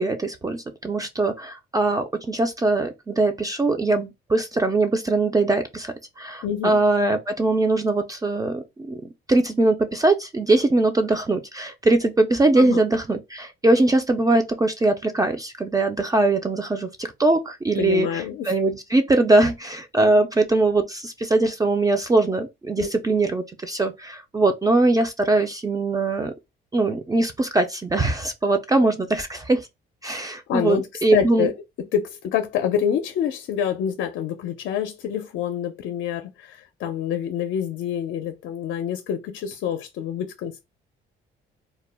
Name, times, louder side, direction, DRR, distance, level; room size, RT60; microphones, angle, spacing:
voice 1, 0.0-9.0 9.3-26.3 26.7-29.7 30.0-31.5, right 2 dB, 20° right, 0.3 m, -21 dB
voice 2, 6.4-6.8 12.6-12.8 17.8-18.5 22.8-22.9 30.5-31.5 31.9-40.6, left 9 dB, 75° left, 0.4 m, -27 dB
2.2 x 2.0 x 3.3 m
cardioid pair, 90°, 20 cm